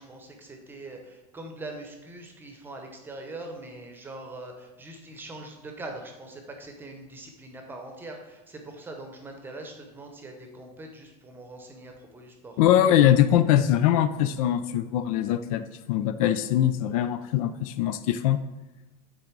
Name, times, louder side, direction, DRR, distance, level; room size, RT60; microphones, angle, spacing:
voice 1, 0.0-12.6, right 2 dB, 10° right, 3 dB, 0.8 m, -42 dB
voice 2, 12.6-18.4, left 11 dB, 60° left, 11 dB, 0.4 m, -22 dB
8.9 x 3.8 x 4.6 m, 1.1 s
supercardioid pair, 165°, 21 cm